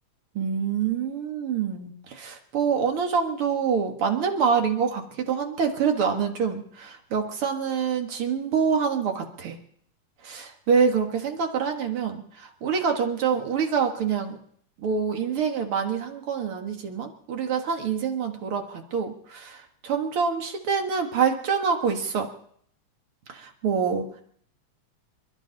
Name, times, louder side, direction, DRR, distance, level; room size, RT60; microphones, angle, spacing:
voice 1, 0.4-9.6 10.2-14.4 14.8-22.3 23.3-24.2, right 6 dB, 55° right, 4 dB, 2.3 m, -26 dB
27.5 x 12.5 x 4.0 m, 0.63 s
omnidirectional pair, 3.3 m